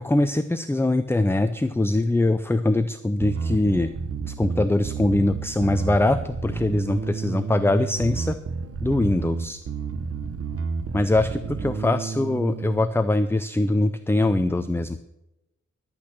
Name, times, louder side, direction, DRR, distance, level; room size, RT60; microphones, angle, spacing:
voice 1, 0.0-3.9 4.3-8.4 8.8-9.6 10.9-15.0, left 2 dB, 10° left, 10 dB, 0.5 m, -22 dB
Bass guitar, 3.2-12.8, right 5 dB, 50° right, 0.9 m, -31 dB
12.0 x 8.8 x 6.0 m, 0.92 s
wide cardioid pair, 155°, 30 cm